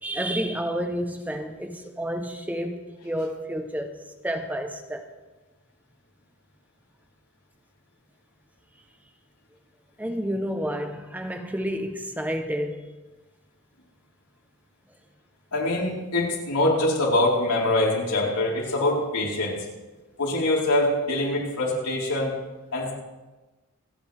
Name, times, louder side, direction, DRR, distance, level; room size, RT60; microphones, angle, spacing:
voice 1, 0.0-4.0 4.2-5.1 10.0-12.8, equal, 5° right, 0.8 m, -30 dB
voice 2, 15.5-19.6 20.2-22.3 22.7-22.9, left 1 dB, 90° left, 4.2 m, -24 dB
28.5 x 9.5 x 3.4 m
head